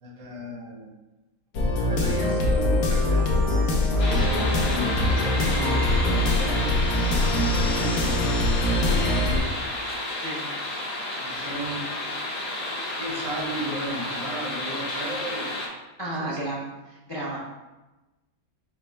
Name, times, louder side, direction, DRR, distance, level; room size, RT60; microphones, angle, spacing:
voice 1, 0.0-0.9 1.8-9.5 11.2-11.9 13.0-15.6 16.2-16.4 17.2-17.4, right 1 dB, 70° right, 0 dB, 1.3 m, -35 dB
sound 1, 1.5-9.4, left 1 dB, 80° left, 1.2 m, -23 dB
sound 2, 4.0-15.7, left 2 dB, 65° left, 1.2 m, -31 dB
voice 2, 10.2-10.5 11.3-11.5 16.0-17.4, right 1 dB, 40° left, -5 dB, 0.3 m, -33 dB
5.3 x 2.1 x 4.4 m, 1.1 s
omnidirectional pair, 1.5 m